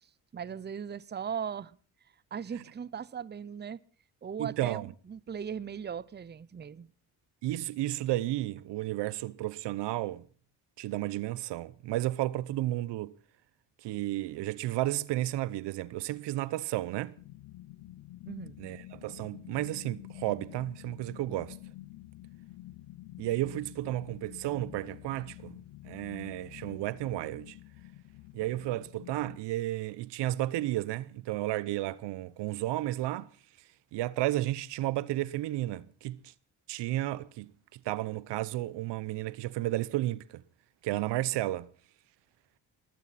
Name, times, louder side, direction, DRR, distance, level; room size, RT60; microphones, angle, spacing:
voice 1, 0.3-1.8 2.3-3.8 4.2-6.9 18.3-18.6 40.9-41.0, right 7 dB, 25° right, 0.7 m, -38 dB
voice 2, 4.4-4.9 7.4-10.2 10.8-13.1 13.8-17.1 18.6-21.6 23.2-25.6 25.8-27.6 28.3-33.3 33.9-36.3 36.7-40.4 40.8-41.7, right 15 dB, 85° right, 0.8 m, -33 dB
sound 1, 17.2-29.4, left 16 dB, 80° left, 0.7 m, -48 dB
20.5 x 16.0 x 4.2 m
cardioid pair, 75°, 41 cm